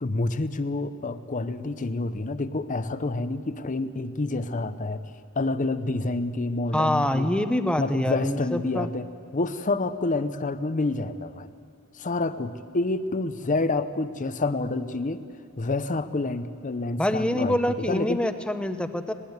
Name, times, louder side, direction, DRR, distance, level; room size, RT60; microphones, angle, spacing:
voice 1, 0.0-5.1 5.4-7.3 7.8-9.1 9.3-11.5 12.0-15.2 15.6-17.6 17.9-18.2, left 2 dB, 35° left, 11 dB, 0.7 m, -28 dB
voice 2, 6.7-8.9 17.0-19.1, left 1 dB, 5° left, 8 dB, 0.9 m, -25 dB
21.0 x 18.5 x 8.1 m, 2.5 s
head